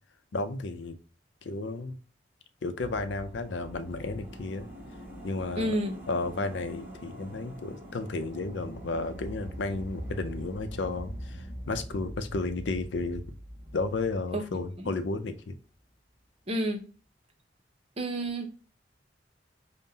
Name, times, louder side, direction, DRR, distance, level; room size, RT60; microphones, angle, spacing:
voice 1, 0.3-1.0 1.4-1.9 2.6-4.7 5.2-5.7 6.1-13.2 13.7-15.6, left 3 dB, 80° left, 0.5 m, -33 dB
sound 1, 2.8-15.2 15.5-15.6, equal, 10° right, 1.1 m, -43 dB
voice 2, 5.6-5.9 14.3-14.4 16.5-16.8 18.0-18.5, right 1 dB, 35° right, 0.7 m, -29 dB
5.3 x 2.1 x 2.7 m
head